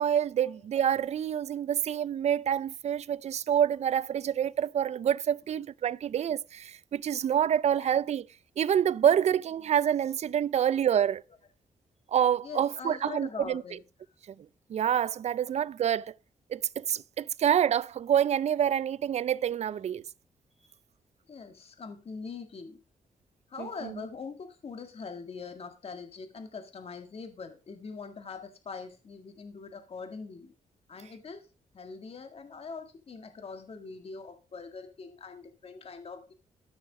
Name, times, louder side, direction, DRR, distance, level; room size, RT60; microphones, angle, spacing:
voice 1, 0.0-8.3 8.6-11.2 12.1-13.6 14.7-16.1 16.5-20.0 23.6-24.0, right 9 dB, 60° right, 0.5 m, -27 dB
voice 2, 12.4-13.8 20.6-20.7 21.3-22.8 23.5-30.5 30.9-31.5 31.7-36.3, left 5 dB, 50° left, 1.8 m, -43 dB
13.5 x 6.4 x 4.9 m
cardioid pair, 85°, 13 cm